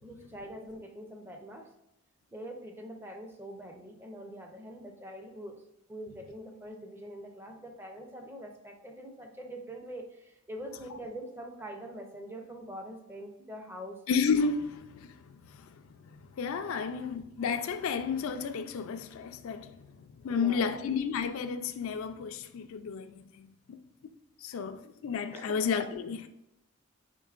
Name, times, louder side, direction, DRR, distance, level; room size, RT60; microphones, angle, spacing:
voice 1, 0.0-1.7 2.3-5.6 5.9-14.0 16.7-16.9 20.3-20.8 25.3-25.5, right 1 dB, 10° right, 0.4 m, -44 dB
voice 2, 14.1-15.7 16.1-23.5 24.4-26.3, left 5 dB, 75° left, 0.3 m, -32 dB
4.5 x 3.7 x 2.4 m
head